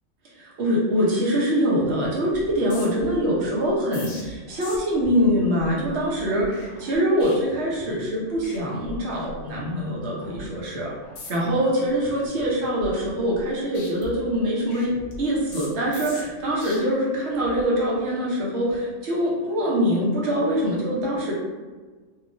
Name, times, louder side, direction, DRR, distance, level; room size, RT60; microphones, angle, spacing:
voice 1, 0.4-10.9 11.3-21.3, equal, 60° right, -4 dB, 1.0 m, -24 dB
sound 1, 2.3-8.0 8.3-8.6 8.8-9.8 10.2-10.5 11.0-11.6 12.0-13.5 13.7-16.7 17.3-17.6, left 1 dB, 60° left, 0.8 m, -42 dB
3.0 x 2.3 x 2.5 m, 1.4 s
omnidirectional pair, 1.3 m